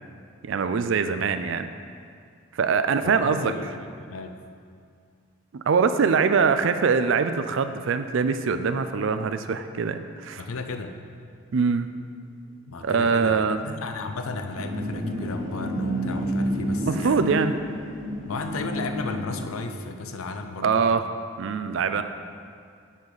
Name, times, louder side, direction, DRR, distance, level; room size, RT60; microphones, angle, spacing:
voice 1, 0.4-1.7 2.5-3.5 5.5-10.4 11.5-11.9 12.8-13.6 16.9-17.5 20.6-21.1 21.4-22.0, right 5 dB, 65° right, 10 dB, 0.4 m, -23 dB
voice 2, 3.0-4.4 10.4-11.0 12.7-17.4 18.3-20.8 21.9-22.0, left 3 dB, 85° left, 7 dB, 0.5 m, -34 dB
sound 1, 12.0-20.3, equal, 5° right, 1.0 m, -44 dB
sound 2, 14.1-19.7, equal, 80° right, 1.7 m, -30 dB
7.3 x 4.0 x 6.5 m, 2.3 s
head